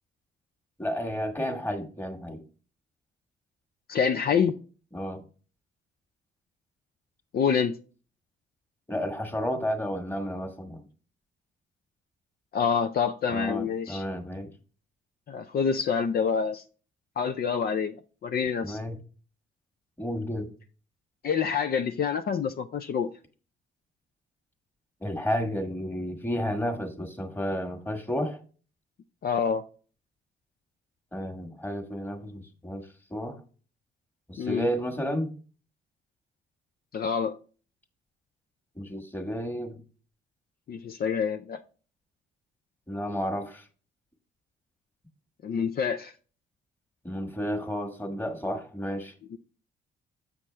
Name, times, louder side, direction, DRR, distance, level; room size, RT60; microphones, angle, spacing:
voice 1, 0.8-2.4 4.9-5.2 8.9-10.8 13.3-14.5 18.6-19.0 20.0-20.5 25.0-28.4 31.1-32.8 33.1-33.4 34.3-35.3 38.8-39.8 42.9-43.6 47.0-49.1, equal, 10° left, 1.5 m, -32 dB
voice 2, 3.9-4.6 7.3-7.8 12.5-14.0 15.3-16.6 17.2-18.0 18.2-18.8 21.2-23.1 29.2-29.6 34.4-34.7 36.9-37.4 40.7-41.6 45.4-46.1 49.3-49.4, left 6 dB, 50° left, 0.5 m, -27 dB
7.0 x 6.3 x 3.3 m
cardioid pair, 90°, 20 cm